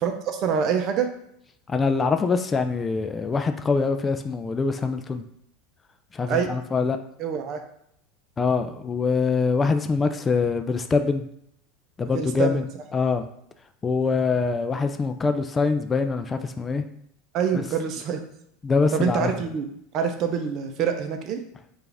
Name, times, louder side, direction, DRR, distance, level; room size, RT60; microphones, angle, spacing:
voice 1, 0.0-1.1 6.3-6.5 7.2-7.6 12.1-12.6 17.3-18.2 18.9-21.4, right 7 dB, 50° right, 6 dB, 0.6 m, -26 dB
voice 2, 1.7-5.2 6.1-7.0 8.4-11.2 12.0-12.6 12.9-13.3 13.8-16.8 17.5-17.6 18.6-19.3, left 4 dB, 25° left, 8 dB, 0.3 m, -24 dB
4.6 x 2.5 x 3.3 m, 0.72 s
hypercardioid pair, 95°, 0 cm